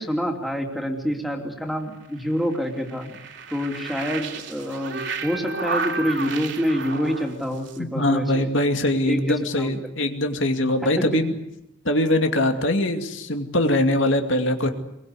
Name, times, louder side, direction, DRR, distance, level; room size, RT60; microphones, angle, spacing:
voice 1, 0.0-3.2 3.5-8.5 9.0-9.2 9.6-9.7 10.9-11.2, equal, ahead, 2 dB, 3.1 m, -27 dB
sound 1, 2.0-7.8, right 4 dB, 65° right, 3.3 m, -32 dB
voice 2, 7.8-11.3 11.8-14.7, left 1 dB, 70° left, 5 dB, 2.5 m, -22 dB
24.0 x 22.5 x 8.3 m, 0.85 s
head